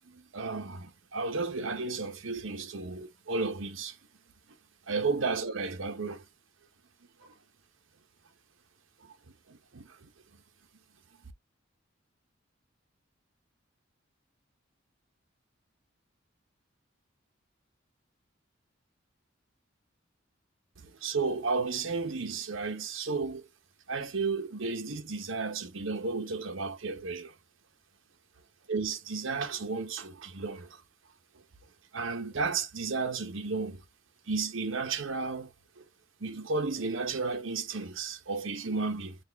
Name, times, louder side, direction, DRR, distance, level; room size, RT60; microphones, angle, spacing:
voice 1, 0.1-3.9 4.9-6.2 9.7-9.9 21.0-23.4 23.9-27.3 28.7-30.7 31.9-33.8 34.3-35.5 35.8-35.9 36.2-39.2, right 4 dB, 80° right, 0.9 m, -33 dB
4.2 x 2.5 x 3.4 m
head